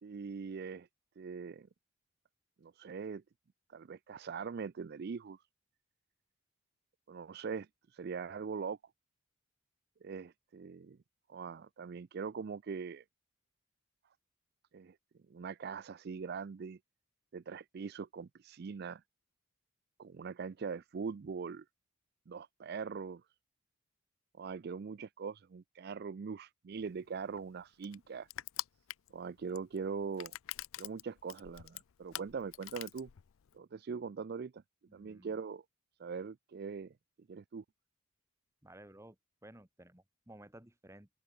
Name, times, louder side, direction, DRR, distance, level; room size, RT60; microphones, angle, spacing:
voice 1, 0.0-0.9 1.2-1.7 2.6-3.2 3.7-5.4 7.1-8.8 10.0-11.0 11.3-13.0 14.7-15.0 15.3-16.8 17.3-19.0 20.0-21.6 22.3-23.2 24.4-28.3 29.1-30.3 30.8-33.1 33.5-34.6 34.9-35.6 36.0-36.9 37.3-37.6, right 5 dB, 50° right, 0.4 m, -42 dB
Crushing, 26.8-33.6, left 15 dB, 75° left, 0.4 m, -46 dB
voice 2, 34.9-35.4 38.6-41.1, right 1 dB, 15° right, 2.1 m, -56 dB
open air
head